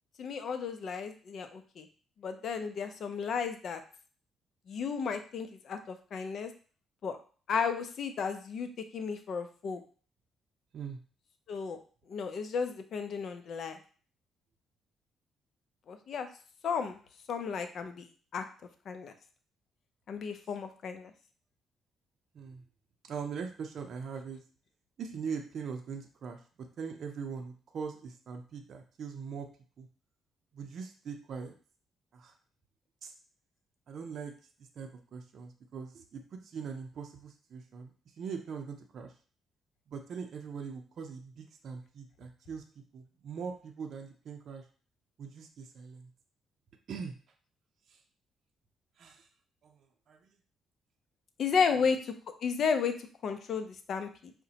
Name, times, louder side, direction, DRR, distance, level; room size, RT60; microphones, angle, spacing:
voice 1, 0.2-1.9 2.2-3.8 4.7-6.5 7.0-7.2 7.5-9.8 11.5-11.8 12.1-13.8 15.9-16.3 16.6-17.0 17.3-18.4 18.9-19.1 20.1-21.1 51.4-52.1 52.4-52.9 53.2-54.3, left 6 dB, 60° left, 8 dB, 0.5 m, -33 dB
voice 2, 23.0-24.4 25.0-26.4 26.8-29.5 29.8-29.9 30.5-31.5 32.1-32.3 33.0-33.1 33.9-34.3 34.8-39.1 39.9-42.6 42.9-44.6 45.2-46.1 46.9-47.2 47.9-48.0 49.0-49.3 49.6-50.3 51.7-51.8, right 6 dB, 60° right, 3 dB, 0.5 m, -41 dB
4.9 x 2.1 x 2.8 m, 0.40 s
cardioid pair, 90°, 0 cm